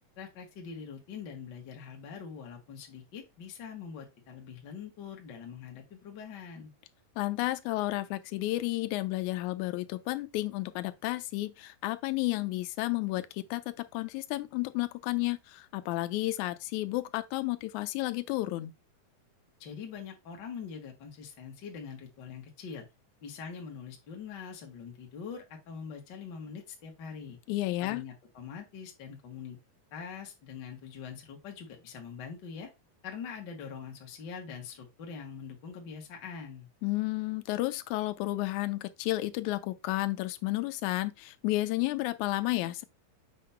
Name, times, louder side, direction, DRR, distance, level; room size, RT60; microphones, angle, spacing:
voice 1, 0.2-6.7 19.6-22.9 23.2-27.4 27.8-29.6 29.9-32.7 33.0-36.7, left 6 dB, 45° left, 1.4 m, -43 dB
voice 2, 7.2-18.7 27.5-28.0 36.8-42.8, left 18 dB, 90° left, 1.7 m, -32 dB
7.6 x 2.9 x 5.6 m
omnidirectional pair, 4.1 m